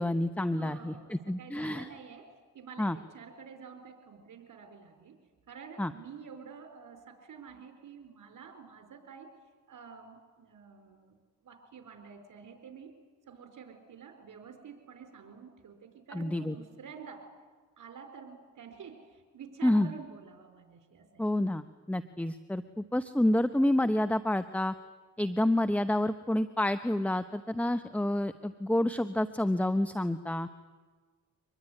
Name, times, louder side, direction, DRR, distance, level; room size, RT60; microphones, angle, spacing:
voice 1, 0.0-1.9 2.8-3.0 5.8-5.9 16.1-16.5 19.6-19.9 21.2-24.7 25.2-30.5, left 1 dB, 5° left, 11 dB, 0.9 m, -28 dB
voice 2, 0.6-5.2 5.5-9.3 9.7-11.2 11.4-12.9 13.3-17.3 17.8-21.2, right 6 dB, 70° right, 6 dB, 4.4 m, -49 dB
24.5 x 20.5 x 9.8 m, 1.4 s
cardioid pair, 60°, 33 cm